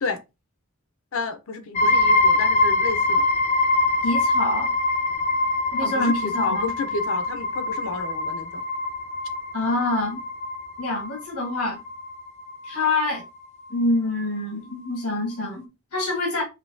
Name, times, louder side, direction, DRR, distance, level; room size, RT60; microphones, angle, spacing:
voice 1, 1.1-3.3 5.8-8.6, left 4 dB, 65° left, 0.6 m, -31 dB
sound 1, 1.8-13.2, left 2 dB, 30° left, 0.4 m, -24 dB
voice 2, 4.0-4.7 5.7-6.7 9.5-10.2 10.8-11.8 12.6-13.2 13.7-16.4, left 2 dB, 90° left, 1.4 m, -26 dB
5.3 x 2.7 x 2.6 m
head